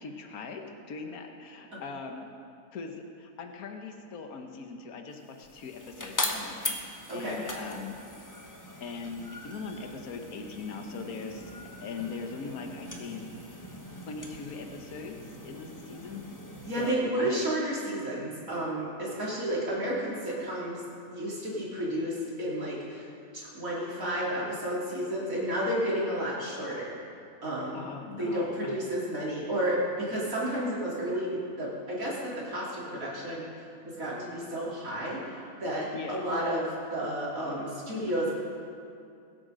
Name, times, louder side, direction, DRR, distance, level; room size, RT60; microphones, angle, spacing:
voice 1, 0.0-2.3 2.7-7.9 8.8-11.5 11.8-13.2 14.1-16.2 16.8-17.5 27.7-28.7 35.9-36.2, left 4 dB, 70° left, 4 dB, 1.5 m, -40 dB
sound 1, 5.2-16.9, left 1 dB, 15° left, 1.0 m, -40 dB
voice 2, 7.1-7.4 16.7-20.8 21.1-23.1 23.3-26.9 27.4-27.9 28.2-33.5 33.9-38.3, right 1 dB, 60° right, -6 dB, 3.5 m, -31 dB
22.0 x 8.3 x 5.1 m, 2.5 s
omnidirectional pair, 1.7 m